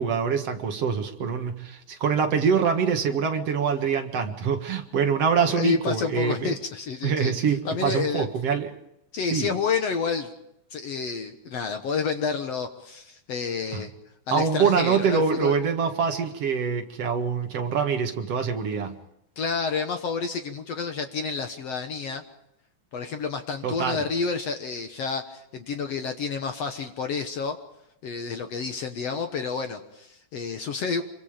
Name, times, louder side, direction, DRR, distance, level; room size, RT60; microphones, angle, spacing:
voice 1, 0.0-6.5 7.0-8.7 9.3-9.5 13.7-13.8 14.3-19.0 23.6-24.0, right 6 dB, 50° right, 5 dB, 2.2 m, -25 dB
voice 2, 5.5-7.3 7.7-8.3 9.1-10.3 10.7-13.9 14.3-15.6 19.4-22.2 22.9-27.6 28.0-31.0, left 5 dB, 65° left, 6 dB, 1.7 m, -29 dB
26.5 x 24.0 x 5.1 m, 0.80 s
omnidirectional pair, 4.5 m